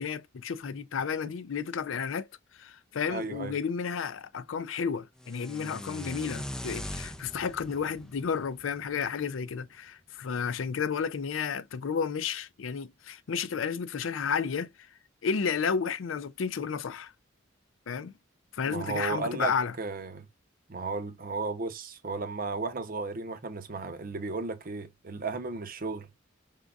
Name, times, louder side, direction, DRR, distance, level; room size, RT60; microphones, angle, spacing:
voice 1, 0.0-2.3 2.6-14.7 15.2-17.1 17.9-18.1 18.5-19.7, left 6 dB, 75° left, 0.4 m, -32 dB
voice 2, 3.1-3.6 18.6-20.3 20.7-26.1, right 3 dB, 45° right, 0.7 m, -34 dB
sound 1, 5.2-9.3, left 1 dB, 5° left, 0.4 m, -41 dB
5.1 x 3.6 x 2.3 m
head